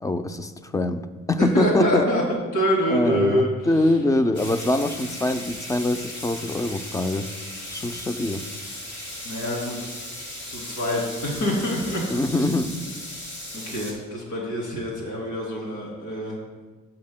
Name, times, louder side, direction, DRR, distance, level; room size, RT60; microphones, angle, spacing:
voice 1, 0.0-2.1 2.9-7.3 7.7-8.4 12.1-12.8, left 2 dB, 10° left, 10 dB, 0.4 m, -24 dB
voice 2, 1.5-2.2 2.5-4.0 9.2-9.8 10.5-12.0 12.3-12.4 13.5-16.4, equal, 85° left, -3 dB, 2.9 m, -26 dB
sound 1, 4.3-13.9, left 1 dB, 70° left, 2.5 m, -37 dB
13.0 x 7.6 x 2.2 m, 1.3 s
cardioid pair, 90°, 30 cm